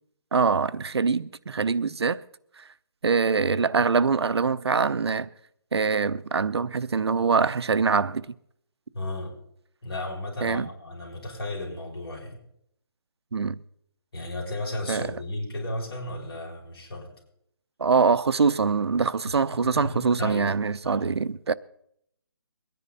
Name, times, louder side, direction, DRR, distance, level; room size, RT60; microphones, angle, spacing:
voice 1, 0.3-2.2 2.6-2.7 3.0-5.3 5.7-8.3 10.4-10.7 13.3-13.6 14.9-15.1 17.8-21.5, right 5 dB, 80° right, 0.7 m, -24 dB
voice 2, 8.9-9.3 9.8-12.4 14.1-17.1 19.3-20.5 20.8-21.1, left 1 dB, 65° left, 6.9 m, -34 dB
23.0 x 10.5 x 4.1 m
hypercardioid pair, 180°, 14 cm